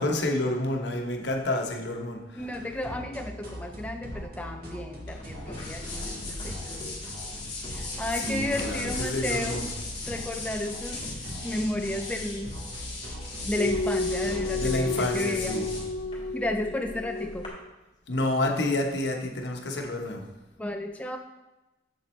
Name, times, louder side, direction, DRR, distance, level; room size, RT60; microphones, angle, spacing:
voice 1, 0.0-2.2 8.1-9.7 14.5-15.7 18.1-20.2, left 1 dB, 70° left, 2 dB, 1.0 m, -29 dB
voice 2, 2.4-6.9 7.7-9.7 10.1-11.1 11.4-12.6 13.4-15.7 16.3-17.5 20.6-21.2, left 1 dB, 10° left, 4 dB, 0.4 m, -33 dB
sound 1, 2.4-16.0, equal, 55° right, 1.7 m, -42 dB
sound 2, 5.1-17.5, left 2 dB, 25° left, 1.7 m, -37 dB
sound 3, 13.6-17.7, left 3 dB, 45° left, 0.7 m, -31 dB
7.3 x 7.2 x 3.2 m, 1.0 s
head